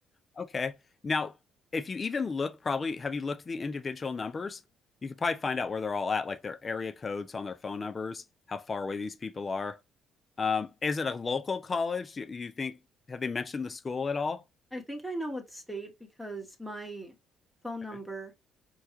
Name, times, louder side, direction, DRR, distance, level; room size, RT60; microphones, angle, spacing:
voice 1, 0.4-0.8 1.0-1.3 1.7-4.6 5.0-9.8 10.4-12.8 13.1-14.4, left 4 dB, 30° left, 0.4 m, -32 dB
voice 2, 14.7-15.9 16.2-17.1 17.6-18.3, right 1 dB, ahead, 1.0 m, -38 dB
4.6 x 2.2 x 2.9 m
cardioid pair, 90°, 0 cm